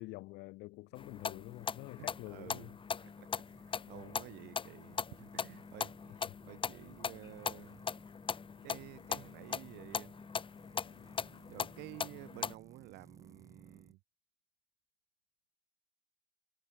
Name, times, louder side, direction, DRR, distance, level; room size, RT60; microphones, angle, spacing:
voice 1, 0.0-2.7 3.9-4.2 6.1-6.4, left 21 dB, 90° left, 1.0 m, -48 dB
sound 1, 0.9-13.9, right 3 dB, 20° right, 1.5 m, -61 dB
sound 2, 1.0-12.5, left 6 dB, 30° left, 0.9 m, -40 dB
voice 2, 2.0-2.7 3.0-6.2 6.4-7.8 8.6-10.1 11.5-14.0, right 22 dB, 90° right, 0.7 m, -52 dB
cardioid pair, 110°, 17 cm